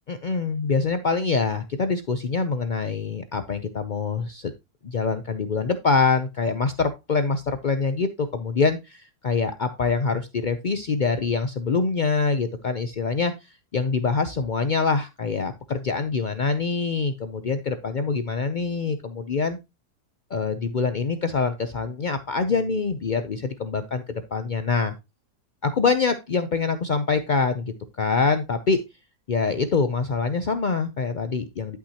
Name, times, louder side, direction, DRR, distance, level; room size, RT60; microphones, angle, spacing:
voice 1, 0.1-4.5 4.8-13.3 13.7-19.6 20.3-24.9 25.6-28.8 29.3-31.8, left 4 dB, 80° left, 9 dB, 0.4 m, -25 dB
11.5 x 6.0 x 2.8 m, 0.23 s
omnidirectional pair, 1.7 m